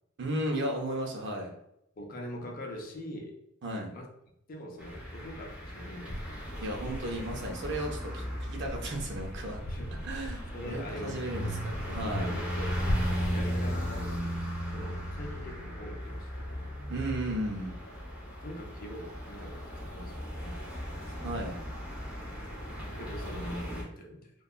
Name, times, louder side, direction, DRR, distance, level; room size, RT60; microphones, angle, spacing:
voice 1, 0.2-1.5 3.6-3.9 6.6-9.6 10.0-12.3 16.9-17.8 21.2-21.6, right 1 dB, 60° right, 1 dB, 0.6 m, -34 dB
voice 2, 2.0-3.4 3.9-4.1 4.5-6.6 9.7-9.9 10.5-11.4 12.0-14.2 14.7-16.7 17.9-20.6 21.0-21.4 22.9-24.3, left 1 dB, 45° left, 1 dB, 0.5 m, -43 dB
sound 1, 4.8-23.8, equal, 5° right, 0.9 m, -37 dB
sound 2, 5.3-5.4 6.1-7.9 8.4-10.7 11.3-14.1, equal, 75° left, 0.8 m, -37 dB
2.7 x 2.3 x 2.3 m, 0.80 s
head